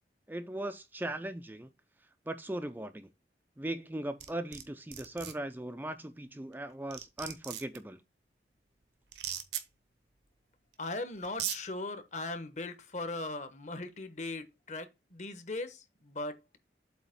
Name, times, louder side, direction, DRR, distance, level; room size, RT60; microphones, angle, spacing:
voice 1, 0.3-1.7 2.3-3.1 3.6-8.0, right 1 dB, 10° right, 0.4 m, -39 dB
sound 1, 4.2-4.6 4.9-5.3 6.5-6.6 6.9-7.8 9.1-9.6 10.7-10.8 11.2-11.6, right 10 dB, 80° right, 1.1 m, -37 dB
voice 2, 10.8-16.6, left 2 dB, 40° left, 1.1 m, -39 dB
8.1 x 3.0 x 5.7 m
head